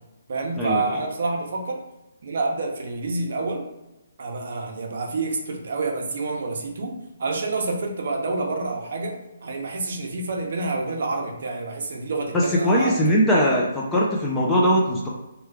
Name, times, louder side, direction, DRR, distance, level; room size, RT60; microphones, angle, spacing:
voice 1, 0.3-1.8 2.2-3.6 4.2-6.9 7.2-13.0 13.3-13.4, right 3 dB, 50° right, 1 dB, 0.7 m, -28 dB
voice 2, 12.3-15.1, equal, 5° left, -4 dB, 0.4 m, -20 dB
3.0 x 2.3 x 3.3 m, 0.97 s
hypercardioid pair, 170°, 0 cm